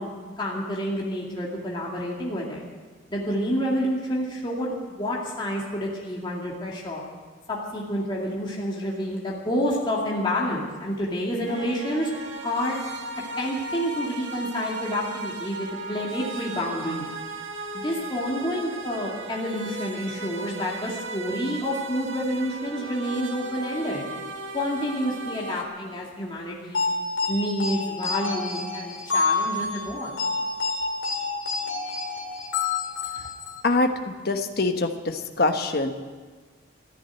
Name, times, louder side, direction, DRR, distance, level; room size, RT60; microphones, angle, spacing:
voice 1, 0.0-2.6 3.1-7.0 7.5-12.1 12.4-12.8 13.4-17.1 17.7-24.0 24.5-26.8 27.3-30.2, equal, 25° left, -4 dB, 2.3 m, -29 dB
sound 1, 11.5-25.6, right 3 dB, 75° right, 1.6 m, -36 dB
sound 2, 26.7-33.6, left 4 dB, 75° left, 2.4 m, -28 dB
voice 2, 33.6-35.9, left 2 dB, 55° left, 6 dB, 1.2 m, -24 dB
14.5 x 10.0 x 9.0 m, 1.4 s
head